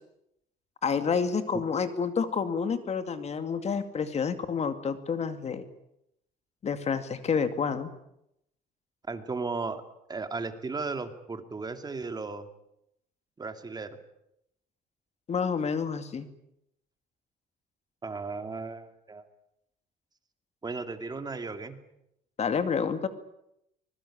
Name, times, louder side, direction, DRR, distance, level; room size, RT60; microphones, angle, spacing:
voice 1, 0.8-5.6 6.6-7.9 15.3-16.3 22.4-23.1, left 6 dB, 40° left, 10 dB, 2.4 m, -29 dB
voice 2, 9.1-9.8 10.1-12.5 13.4-14.0 18.0-19.2 20.6-21.8, right 4 dB, 25° right, 8 dB, 2.5 m, -35 dB
24.5 x 21.0 x 8.8 m, 0.80 s
cardioid pair, 110°, 17 cm